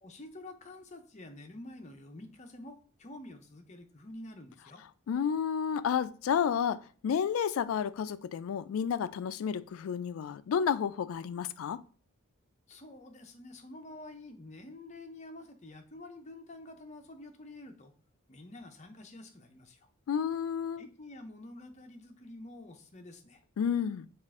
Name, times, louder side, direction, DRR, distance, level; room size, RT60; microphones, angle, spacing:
voice 1, 0.0-4.8 12.7-17.9 18.3-19.9 20.8-23.4, left 2 dB, 35° left, 0.6 m, -48 dB
voice 2, 5.1-11.8 20.1-20.9 23.6-24.1, left 7 dB, 75° left, 0.3 m, -31 dB
5.4 x 2.5 x 3.6 m
head